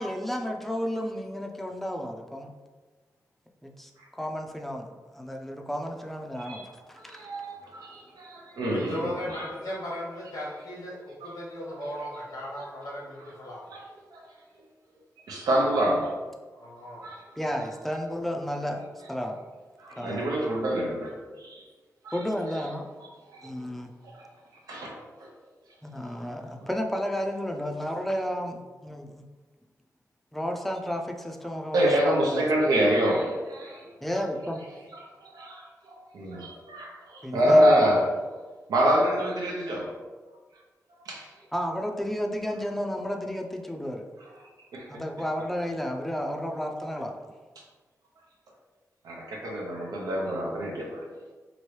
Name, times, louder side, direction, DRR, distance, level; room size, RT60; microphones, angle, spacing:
voice 1, 0.0-2.5 3.6-6.6 6.9-7.3 17.4-19.4 20.0-20.3 22.1-22.9 23.4-23.9 25.8-29.3 30.3-32.5 34.0-34.6 37.2-37.8 41.5-44.1 44.9-47.2, equal, 5° left, 2 dB, 0.4 m, -32 dB
voice 2, 7.1-9.4 12.6-12.7 13.7-13.8 14.1-14.2 15.3-16.1 17.0-17.2 19.8-21.6 22.0-22.1 23.4-23.5 24.7-25.0 31.7-33.9 35.4-35.5 36.1-38.1 38.7-39.9 41.0-41.3 44.7-44.9 49.0-51.1, equal, 90° right, -2 dB, 0.7 m, -26 dB
voice 3, 8.7-13.7 16.5-17.1, left 1 dB, 90° left, -4 dB, 1.0 m, -37 dB
2.9 x 2.6 x 3.1 m, 1.3 s
cardioid pair, 65°, 6 cm